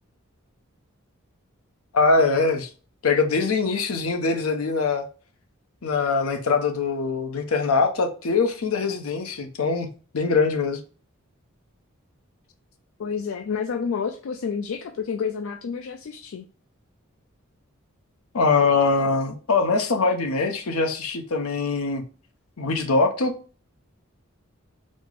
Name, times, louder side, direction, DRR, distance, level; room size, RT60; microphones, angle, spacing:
voice 1, 1.9-2.7 3.0-5.1 5.8-9.9 10.1-10.8 18.3-22.0 22.6-23.3, left 4 dB, 85° left, 0.7 m, -22 dB
voice 2, 13.0-16.4, left 6 dB, 65° left, 0.4 m, -29 dB
4.2 x 2.0 x 4.5 m
head